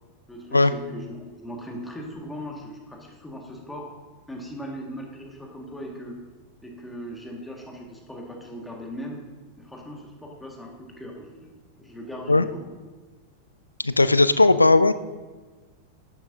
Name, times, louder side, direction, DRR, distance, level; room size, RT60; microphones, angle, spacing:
voice 1, 0.3-3.9 4.3-6.2 6.6-9.2 9.6-12.6, equal, 5° left, 0 dB, 1.8 m, -39 dB
voice 2, 13.8-14.9, left 2 dB, 80° left, 13 dB, 0.3 m, -17 dB
11.0 x 9.7 x 2.7 m, 1.3 s
figure-of-eight pair, 90°, 0 cm